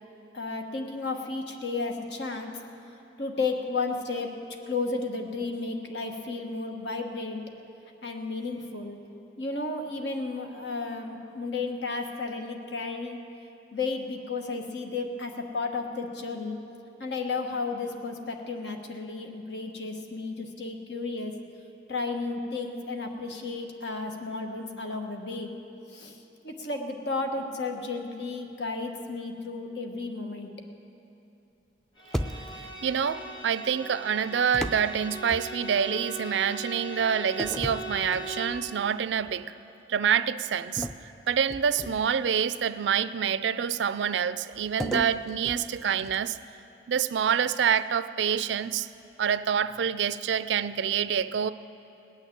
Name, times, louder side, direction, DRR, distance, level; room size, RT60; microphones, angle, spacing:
voice 1, 0.3-2.6 3.2-4.4 4.7-7.4 8.0-9.0 9.4-13.2 13.7-16.6 17.0-21.3 21.9-25.5 25.9-30.5, left 3 dB, 75° left, 3 dB, 1.3 m, -33 dB
Bowed string instrument, 32.0-38.6, equal, 25° left, 1.7 m, -40 dB
sound 1, 32.1-32.8 34.5-35.9 37.4-38.7 39.2-39.4 40.8-42.3 44.8-46.4, equal, 5° left, 0.4 m, -36 dB
voice 2, 32.8-39.5 39.9-40.9 41.3-46.4 46.9-48.9 49.2-51.5, right 7 dB, 80° right, 15 dB, 0.4 m, -27 dB
18.5 x 6.5 x 9.8 m, 2.8 s
head